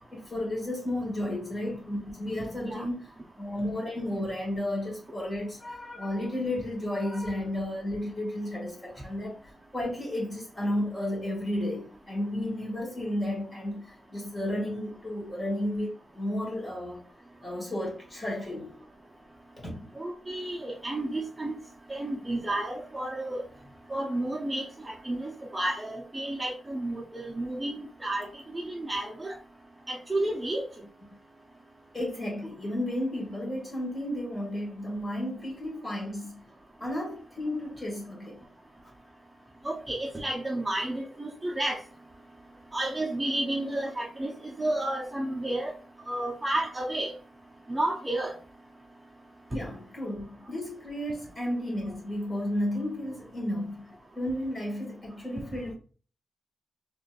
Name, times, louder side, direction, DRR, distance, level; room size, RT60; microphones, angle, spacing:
voice 1, 0.1-3.1 3.4-17.0 17.4-18.7 19.6-19.9 31.9-36.4 36.8-38.4 49.5-53.8 54.1-55.7, left 1 dB, 25° left, 1.9 m, -33 dB
voice 2, 20.0-21.6 21.9-23.4 23.9-29.3 29.9-30.6 39.6-41.8 42.7-44.3 44.6-45.7 46.1-47.1 47.7-48.4, right 1 dB, 15° right, 0.6 m, -31 dB
4.3 x 3.0 x 2.4 m
wide cardioid pair, 130°, 0 cm